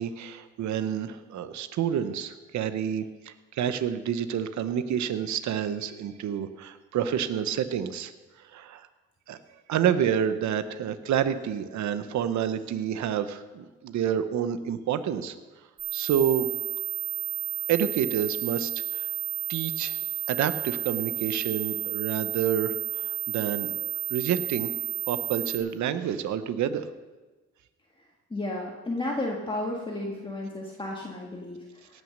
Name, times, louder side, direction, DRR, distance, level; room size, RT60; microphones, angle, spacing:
voice 1, 0.0-8.1 8.5-8.9 9.3-9.4 9.7-15.4 15.9-16.5 17.7-19.1 19.5-20.0 20.3-23.7 24.1-24.7 25.1-26.9, right 9 dB, 70° right, 11 dB, 0.9 m, -28 dB
sound 1, 15.8-25.6, right 13 dB, 15° right, 3.6 m, -32 dB
voice 2, 28.3-31.9, left 2 dB, 15° left, -2 dB, 1.7 m, -33 dB
17.5 x 6.4 x 6.5 m, 1.2 s
cardioid pair, 90°, 30 cm